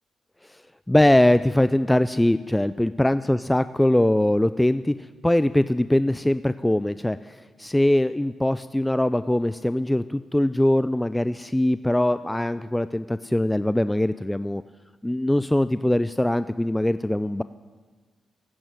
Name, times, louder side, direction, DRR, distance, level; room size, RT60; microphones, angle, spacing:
voice 1, 0.9-14.6 15.0-17.4, left 1 dB, 10° left, 14 dB, 0.4 m, -22 dB
15.5 x 8.8 x 9.5 m, 1.4 s
hypercardioid pair, 40°, 0 cm